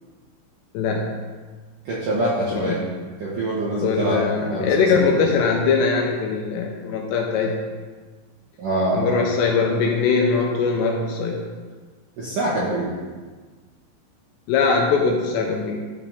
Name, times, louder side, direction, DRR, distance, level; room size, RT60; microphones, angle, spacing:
voice 1, 0.7-1.1 2.5-2.8 3.8-7.6 8.9-11.4 14.5-15.8, left 5 dB, 80° left, 0 dB, 2.6 m, -21 dB
voice 2, 1.9-2.8 3.2-5.2 8.6-9.0 12.2-12.9, right 1 dB, 70° right, -7 dB, 2.0 m, -24 dB
12.0 x 5.0 x 3.5 m, 1.4 s
omnidirectional pair, 5.5 m